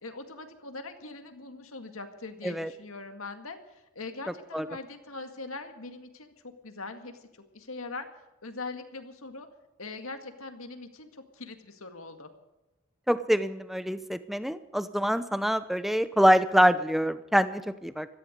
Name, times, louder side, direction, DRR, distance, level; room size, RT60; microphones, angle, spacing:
voice 1, 0.0-6.3 6.6-7.3 7.5-8.1 8.4-9.5 9.8-12.3, left 3 dB, 80° left, 6 dB, 2.0 m, -41 dB
voice 2, 13.1-18.1, equal, ahead, 12 dB, 0.6 m, -25 dB
17.0 x 14.0 x 5.2 m, 1.0 s
head